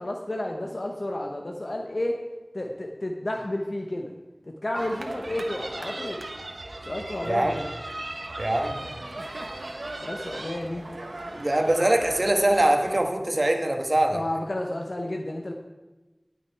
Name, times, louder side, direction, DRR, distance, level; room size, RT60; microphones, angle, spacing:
voice 1, 0.0-2.2 2.5-4.1 4.6-6.2 6.9-7.7 10.0-10.9 14.1-15.5, left 1 dB, 60° left, 2 dB, 0.9 m, -31 dB
sound 1, 4.7-13.0, right 1 dB, 80° right, 1.1 m, -38 dB
voice 2, 7.3-7.6 8.4-8.8 11.3-14.2, right 1 dB, 50° right, 4 dB, 1.3 m, -23 dB
18.0 x 6.2 x 4.6 m, 1.2 s
wide cardioid pair, 45°, 0 cm